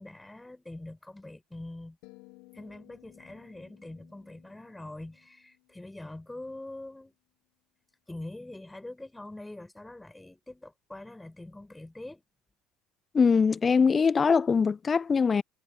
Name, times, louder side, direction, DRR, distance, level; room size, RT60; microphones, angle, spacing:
voice 1, 0.0-2.0 2.5-7.1 8.1-12.2, left 2 dB, 10° left, 4.2 m, -44 dB
sound 1, 2.0-6.3, left 28 dB, 60° left, 3.8 m, -58 dB
voice 2, 13.1-15.4, left 5 dB, 30° left, 0.3 m, -22 dB
figure-of-eight pair, 65°, 0 cm